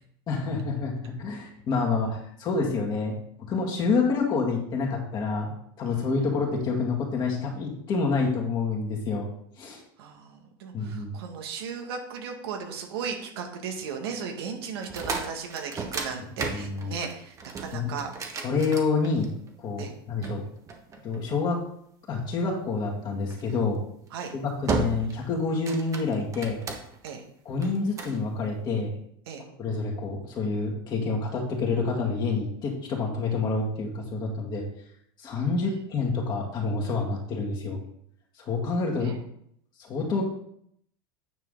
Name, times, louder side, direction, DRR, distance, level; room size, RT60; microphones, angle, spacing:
voice 1, 0.3-5.5 5.8-9.3 9.6-9.8 10.7-11.1 16.5-16.9 17.7-17.9 18.4-19.3 19.6-20.4 21.0-21.6 22.1-23.8 24.3-26.6 27.5-28.9 29.6-34.7 35.2-37.8 38.4-39.2 39.8-40.2, left 4 dB, 35° left, -1 dB, 2.1 m, -28 dB
voice 2, 10.0-18.1 19.8-19.9 24.1-24.3 27.0-27.2 29.3-29.4 39.0-39.1, right 6 dB, 80° right, 3 dB, 1.7 m, -36 dB
sound 1, 14.8-19.5 20.2-21.5 23.3-23.6 24.1-24.3 24.7-25.2 25.5-27.1 27.6-28.2, right 4 dB, 25° right, 1.2 m, -34 dB
9.3 x 4.9 x 3.9 m, 0.70 s
supercardioid pair, 130°, 13 cm